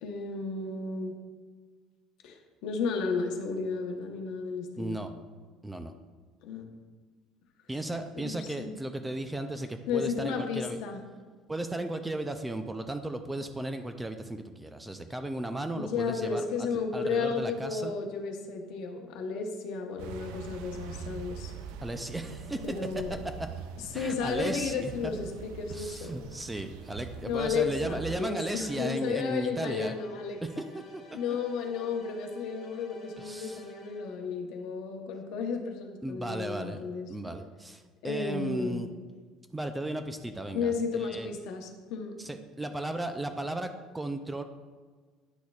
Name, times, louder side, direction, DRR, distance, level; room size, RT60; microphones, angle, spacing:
voice 1, 0.0-1.1 2.2-5.0 6.4-6.7 8.2-8.7 9.9-11.0 15.8-21.5 22.6-23.1 23.9-26.2 27.2-30.4 31.1-37.1 38.0-38.8 40.5-42.1, left 5 dB, 65° left, 3 dB, 0.9 m, -33 dB
voice 2, 4.8-5.1 5.6-5.9 7.7-10.8 11.5-17.9 21.8-22.6 22.9-23.0 23.4-23.5 23.9-25.1 25.7-29.9 30.4-30.6 33.2-33.6 36.0-36.8 37.1-38.9 39.5-41.3 42.2-44.4, right 1 dB, 5° right, 7 dB, 0.3 m, -35 dB
sound 1, 20.0-28.2, right 6 dB, 85° right, 0.4 m, -43 dB
sound 2, 27.5-34.4, left 1 dB, 25° left, 2.0 m, -53 dB
9.8 x 6.3 x 2.3 m, 1.5 s
cardioid pair, 170°, 0 cm